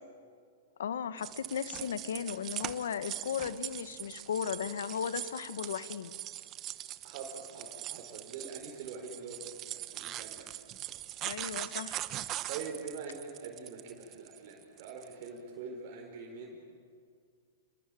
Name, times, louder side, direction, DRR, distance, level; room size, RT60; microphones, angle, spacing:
voice 1, 0.8-6.1 11.2-12.0, left 8 dB, 80° left, 14 dB, 1.3 m, -36 dB
sound 1, 1.2-15.3, right 13 dB, 30° right, 1.0 m, -41 dB
voice 2, 7.0-10.5 12.5-16.6, right 5 dB, 50° right, 1 dB, 4.7 m, -44 dB
29.5 x 21.0 x 9.3 m, 2.1 s
hypercardioid pair, 140°, 0 cm